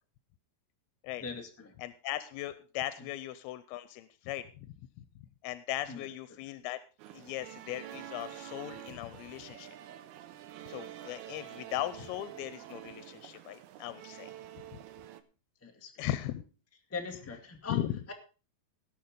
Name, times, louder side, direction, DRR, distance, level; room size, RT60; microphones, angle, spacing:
voice 1, 1.2-1.7 5.9-6.4 15.6-16.0 16.9-17.8 18.1-18.2, left 5 dB, 15° left, 3 dB, 0.5 m, -41 dB
voice 2, 1.8-5.1 5.4-6.8 7.1-9.8 10.7-14.3 14.7-14.8 16.0-16.4 17.7-17.9, left 13 dB, 90° left, 14 dB, 2.6 m, -38 dB
sound 1, 7.0-15.2, right 12 dB, 85° right, 2.8 m, -48 dB
18.0 x 6.4 x 5.2 m, 0.35 s
omnidirectional pair, 4.3 m